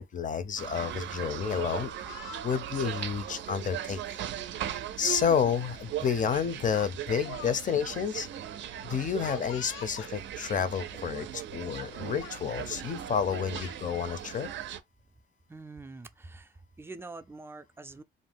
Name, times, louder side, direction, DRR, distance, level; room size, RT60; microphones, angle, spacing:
voice 1, 0.0-1.9 2.4-4.0 5.0-8.3 8.8-14.5, left 7 dB, 40° left, 0.5 m, -30 dB
sound 1, 0.6-14.8, right 10 dB, 70° right, 0.5 m, -39 dB
Speech, 1.6-2.7 3.6-3.8 5.1-5.2 5.5-5.8 6.7-7.6 7.8-7.9 9.2-10.2 11.1-11.2 11.5-11.9 12.2-12.4 13.2-13.8, left 10 dB, 90° left, 0.4 m, -46 dB
voice 2, 15.5-16.5 16.8-18.0, right 3 dB, 10° right, 0.4 m, -45 dB
2.6 x 2.1 x 3.4 m
cardioid pair, 90°, 20 cm